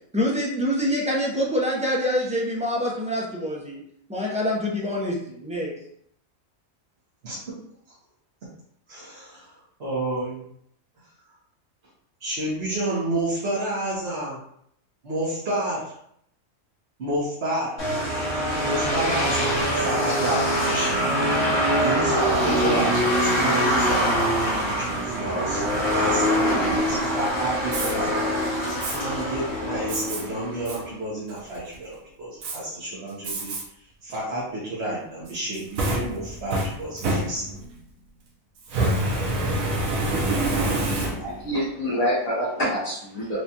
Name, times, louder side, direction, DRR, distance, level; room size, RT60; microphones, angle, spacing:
voice 1, 0.1-3.8 4.1-5.7, equal, 10° right, -4 dB, 0.3 m, -25 dB
voice 2, 7.2-7.6 8.9-9.5 9.8-10.4 12.2-14.4 15.0-16.0 17.0-17.8 18.6-21.1 21.8-25.6 25.9-33.5 34.0-37.4, right 1 dB, 55° right, -9 dB, 1.2 m, -30 dB
sound 1, 17.8-30.8, equal, 55° left, 1.2 m, -24 dB
Fire, 27.6-27.9 28.8-29.0 29.9-30.2 30.7-30.8 31.3-31.7 32.4-32.6 33.2-33.6 34.1-34.2 35.3-37.7 38.6-41.5, right 1 dB, 80° right, 1.2 m, -26 dB
voice 3, 41.1-43.4, equal, 75° left, -9 dB, 1.6 m, -27 dB
4.8 x 2.3 x 2.8 m, 0.69 s
omnidirectional pair, 1.4 m